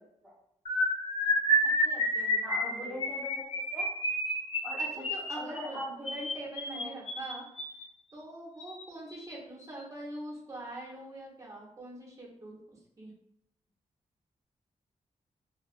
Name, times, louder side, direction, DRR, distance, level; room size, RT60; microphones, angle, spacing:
sound 1, 0.7-7.8 8.6-8.8 9.1-9.3 9.6-9.8, equal, 55° left, 0.7 m, -30 dB
voice 1, 1.6-3.0 4.8-7.4 8.1-13.1, right 1 dB, 25° right, -4 dB, 0.9 m, -44 dB
voice 2, 2.4-3.4 3.7-3.9 4.6-5.0 5.3-6.3 6.7-6.9, left 1 dB, 5° right, -7 dB, 1.2 m, -41 dB
3.8 x 2.4 x 2.4 m, 0.73 s
wide cardioid pair, 160°, 12 cm